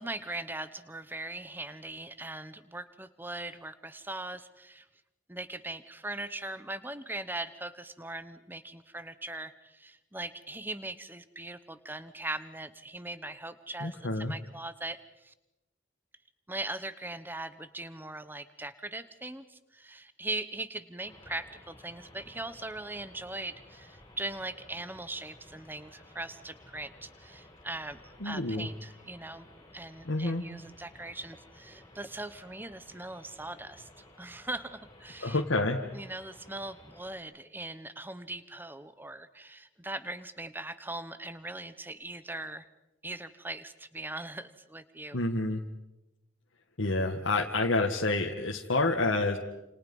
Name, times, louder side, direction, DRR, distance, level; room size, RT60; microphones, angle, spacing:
voice 1, 0.0-4.9 5.3-15.3 16.5-29.5 29.7-33.9 34.2-35.4 35.9-42.7 43.0-45.2, right 2 dB, 10° right, 13 dB, 1.0 m, -40 dB
voice 2, 13.8-14.3 28.2-28.7 30.1-30.4 35.2-35.8 45.1-45.6 46.8-49.4, left 2 dB, 70° left, 1 dB, 1.7 m, -28 dB
sound 1, 21.0-37.2, left 1 dB, 20° left, 5.8 m, -55 dB
29.5 x 28.5 x 5.5 m, 0.95 s
head